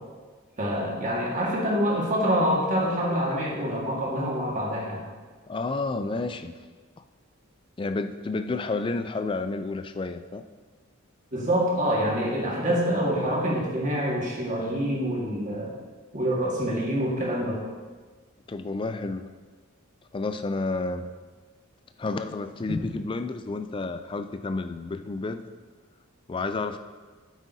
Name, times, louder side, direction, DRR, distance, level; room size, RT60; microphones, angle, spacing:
voice 1, 0.6-5.0 11.3-15.7 16.1-17.6 22.7-22.8, equal, 35° right, -3 dB, 1.7 m, -26 dB
voice 2, 5.5-6.6 7.8-10.4 18.5-19.3 20.1-21.1 22.0-25.4 26.3-26.8, left 3 dB, 25° left, 9 dB, 0.3 m, -30 dB
9.0 x 8.3 x 2.7 m, 1.4 s
head